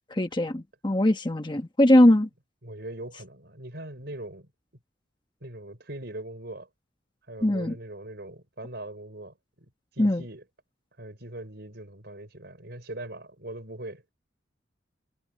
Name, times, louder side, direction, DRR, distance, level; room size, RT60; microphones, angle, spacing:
voice 1, 0.1-2.3 7.4-7.8 10.0-10.2, left 1 dB, 25° left, 1.3 m, -21 dB
voice 2, 2.6-4.5 5.4-6.7 7.3-10.4 11.0-14.0, right 1 dB, 55° right, 5.9 m, -41 dB
head